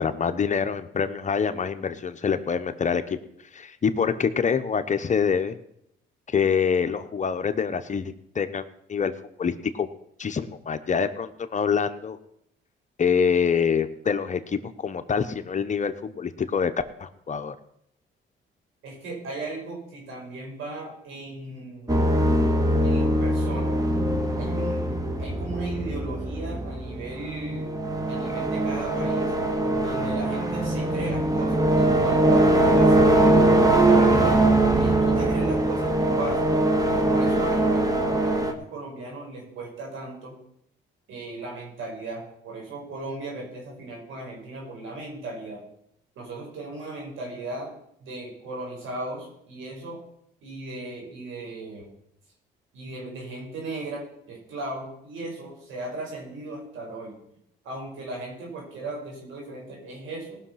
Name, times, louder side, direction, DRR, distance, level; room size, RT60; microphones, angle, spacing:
voice 1, 0.0-3.2 3.5-5.6 6.3-9.1 9.4-9.9 10.2-12.2 13.0-16.7 17.0-17.6, left 6 dB, 40° left, 9 dB, 0.9 m, -25 dB
voice 2, 18.8-22.1 22.8-23.8 24.3-24.9 25.2-27.8 28.1-29.3 29.8-34.4 34.7-36.6 37.1-40.4 41.1-45.6 46.2-47.7 48.0-50.0 50.4-51.9 52.7-57.2 57.6-60.4, right 2 dB, 85° right, -1 dB, 5.3 m, -37 dB
sound 1, 21.9-38.5, right 1 dB, 20° right, 1.6 m, -22 dB
18.5 x 6.3 x 5.8 m, 0.73 s
cardioid pair, 90°, 20 cm